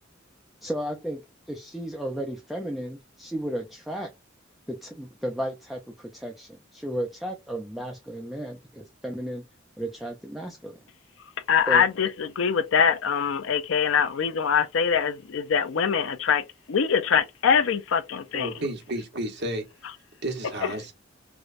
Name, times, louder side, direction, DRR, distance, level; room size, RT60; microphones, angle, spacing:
voice 1, 0.6-4.1 4.7-9.5 9.8-10.8 11.7-11.8, equal, ahead, 0.4 m, -34 dB
voice 2, 11.5-18.5, left 7 dB, 75° left, 0.4 m, -23 dB
voice 3, 18.3-19.6 20.2-20.9, right 1 dB, 55° right, 1.1 m, -31 dB
4.7 x 2.2 x 2.5 m
head